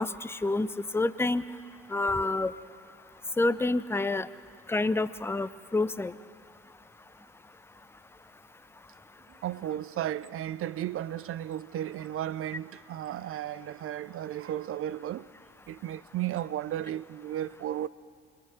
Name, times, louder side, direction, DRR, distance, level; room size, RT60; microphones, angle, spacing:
voice 1, 0.0-1.4 1.9-2.5 3.4-4.3 4.7-6.1, left 2 dB, 5° left, 0.6 m, -28 dB
voice 2, 9.3-15.3 15.7-17.9, right 12 dB, 40° right, 0.6 m, -34 dB
25.0 x 22.0 x 5.0 m
figure-of-eight pair, 50°, 34 cm